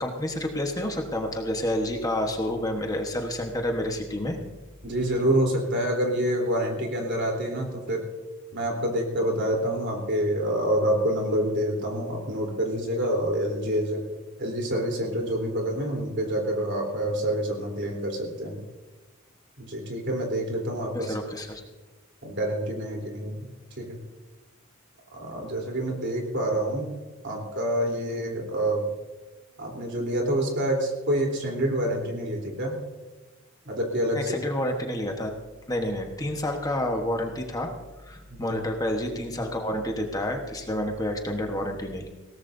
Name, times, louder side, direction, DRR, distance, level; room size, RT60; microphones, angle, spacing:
voice 1, 0.0-4.4 20.9-21.6 34.1-35.3 35.7-37.7 38.0-42.1, left 1 dB, 15° left, 3 dB, 1.2 m, -29 dB
voice 2, 4.8-8.1 8.5-14.0 14.4-18.6 19.6-21.1 22.2-23.5 23.8-24.0 25.1-26.9 27.2-28.9 29.6-32.8 33.6-34.3 38.3-38.6, right 1 dB, 55° right, 1 dB, 3.5 m, -27 dB
21.0 x 17.5 x 2.7 m, 1.2 s
head